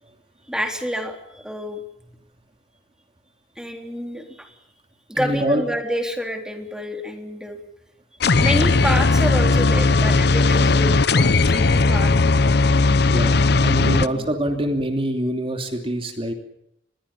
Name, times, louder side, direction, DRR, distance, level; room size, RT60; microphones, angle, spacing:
voice 1, 0.5-1.8 3.6-4.5 5.1-7.6 8.4-12.4 13.3-13.4 13.7-14.3, equal, 5° right, 4 dB, 3.7 m, -28 dB
voice 2, 5.1-5.6 13.1-16.3, right 1 dB, 30° right, 5 dB, 2.9 m, -25 dB
sound 1, 8.2-14.1, left 3 dB, 65° left, 0.9 m, -17 dB
27.0 x 21.5 x 7.2 m, 0.77 s
head